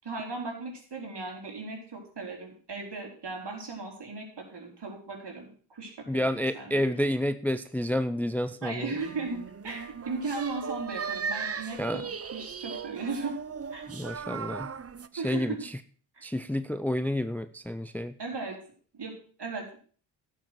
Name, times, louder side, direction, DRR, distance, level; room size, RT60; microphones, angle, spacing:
voice 1, 0.0-6.8 8.6-9.4 9.6-13.3 13.7-13.9 15.2-15.6 16.1-16.2 18.2-18.6 18.9-19.8, right 3 dB, 55° right, 1 dB, 4.8 m, -37 dB
voice 2, 6.1-8.9 11.8-12.0 13.9-14.7 15.1-15.7 16.2-18.1, left 1 dB, 5° left, 13 dB, 0.7 m, -29 dB
sound 1, 9.0-15.1, right 6 dB, 30° right, 0.8 m, -37 dB
11.5 x 7.6 x 6.5 m, 0.43 s
supercardioid pair, 45°, 48 cm